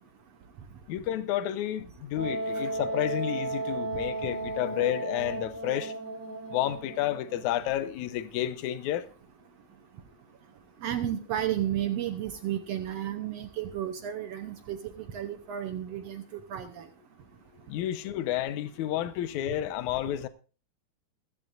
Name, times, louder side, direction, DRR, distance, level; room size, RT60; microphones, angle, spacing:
voice 1, 0.9-5.9 6.5-9.1 17.7-20.3, left 12 dB, 75° left, 2.0 m, -30 dB
Wind instrument woodwind instrument, 2.2-7.7, right 2 dB, 50° left, 4.5 m, -34 dB
voice 2, 10.8-16.2 16.5-16.8, right 11 dB, 75° right, 1.5 m, -32 dB
15.5 x 15.0 x 2.5 m
omnidirectional pair, 3.8 m